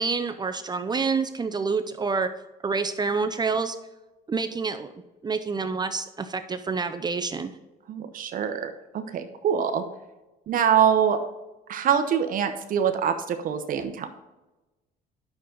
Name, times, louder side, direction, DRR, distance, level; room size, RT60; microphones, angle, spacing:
voice 1, 0.0-2.3 2.6-3.8 4.3-4.9 5.2-7.5, right 4 dB, 25° right, 8 dB, 0.6 m, -27 dB
voice 2, 7.9-9.8 10.5-11.2 11.7-14.1, right 8 dB, 55° right, 8 dB, 0.9 m, -24 dB
9.6 x 6.7 x 3.8 m, 1.1 s
cardioid pair, 110°, 17 cm